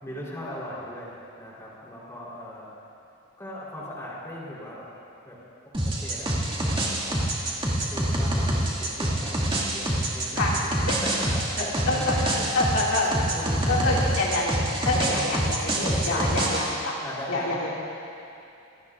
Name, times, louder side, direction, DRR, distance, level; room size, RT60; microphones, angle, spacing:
voice 1, 0.0-2.7 3.4-4.9 5.3-5.5 5.8-7.2 7.8-11.5 11.9-12.5 12.9-14.3 14.9-16.3 17.0-17.6, left 1 dB, 15° left, -6 dB, 3.9 m, -39 dB
sound 1, 5.7-16.7, right 1 dB, 25° right, 2.2 m, -26 dB
voice 2, 11.6-13.1 13.7-14.6 14.8-16.9 17.3-17.7, left 2 dB, 70° left, -5 dB, 2.4 m, -26 dB
26.0 x 18.0 x 2.6 m, 2.7 s
head